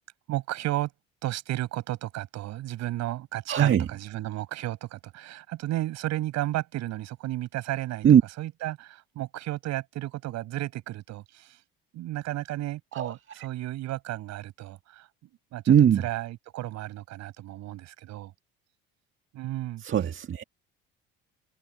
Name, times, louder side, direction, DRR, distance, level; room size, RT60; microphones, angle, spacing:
voice 1, 0.3-0.9 1.2-8.1 8.4-11.6 11.9-15.1 15.5-18.3 19.3-19.8, right 15 dB, 60° right, 6.0 m, -33 dB
voice 2, 3.5-3.9 8.0-8.2 12.9-13.1 15.7-16.0 19.8-20.4, right 9 dB, 40° right, 1.8 m, -20 dB
hypercardioid pair, 65°, 30 cm